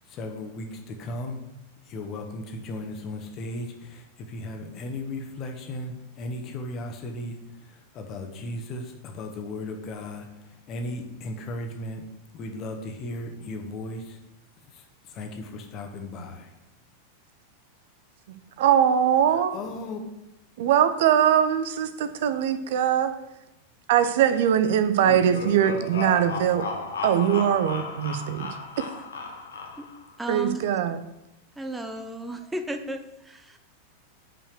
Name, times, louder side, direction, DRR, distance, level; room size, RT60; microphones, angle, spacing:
voice 1, 0.1-1.4 1.8-12.0 12.3-14.2 14.7-16.5 19.3-20.0, left 1 dB, 35° left, 4 dB, 1.3 m, -36 dB
voice 2, 18.6-19.5 20.6-23.1 23.9-26.6 27.0-28.5 30.3-31.0, right 9 dB, 55° right, 10 dB, 0.7 m, -21 dB
sound 1, 25.0-30.1, left 3 dB, 65° left, 1.1 m, -34 dB
voice 3, 30.2-30.7 31.6-33.6, right 1 dB, 10° right, 7 dB, 0.7 m, -34 dB
5.8 x 5.2 x 6.5 m, 0.89 s
figure-of-eight pair, 90°, 0 cm